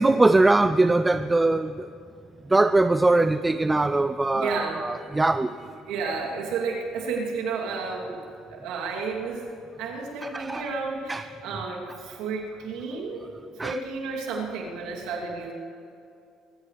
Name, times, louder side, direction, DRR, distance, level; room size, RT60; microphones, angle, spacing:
voice 1, 0.0-1.9 2.5-5.5 10.2-10.7 11.1-11.3 13.6-13.8, right 2 dB, 15° right, 12 dB, 0.4 m, -21 dB
voice 2, 4.3-4.9 5.9-8.2 8.5-9.5 9.8-13.2 13.6-15.5, right 4 dB, 80° right, -3 dB, 2.9 m, -31 dB
23.5 x 14.5 x 3.4 m, 2.6 s
supercardioid pair, 90°, 0 cm